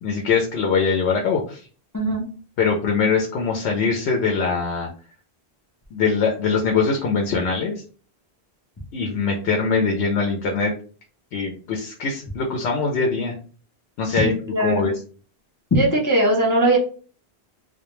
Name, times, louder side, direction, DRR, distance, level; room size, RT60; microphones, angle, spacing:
voice 1, 0.0-1.6 2.6-4.9 5.9-7.7 8.9-10.7 11.3-13.4 14.0-14.3 14.6-14.9, left 5 dB, 80° left, 1 dB, 0.8 m, -22 dB
voice 2, 14.1-14.9 15.7-16.8, right 1 dB, 25° left, -4 dB, 0.4 m, -19 dB
2.2 x 2.2 x 2.9 m, 0.39 s
omnidirectional pair, 1.1 m